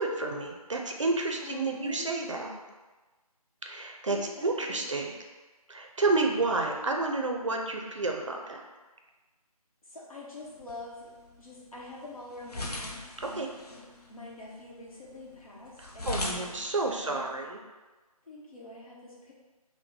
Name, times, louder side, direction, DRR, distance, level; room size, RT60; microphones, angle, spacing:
voice 1, 0.0-2.5 3.7-5.1 5.7-8.6 13.2-13.5 15.8-17.6, right 3 dB, 55° right, 1 dB, 0.5 m, -30 dB
voice 2, 1.4-2.7 4.1-4.9 9.8-11.1 11.4-13.8 14.1-17.2 18.2-19.3, left 2 dB, 65° left, -4 dB, 1.0 m, -45 dB
sound 1, 10.4-17.5, left 2 dB, 85° left, 0.6 m, -41 dB
3.0 x 2.1 x 3.6 m, 1.3 s
figure-of-eight pair, 155°, 19 cm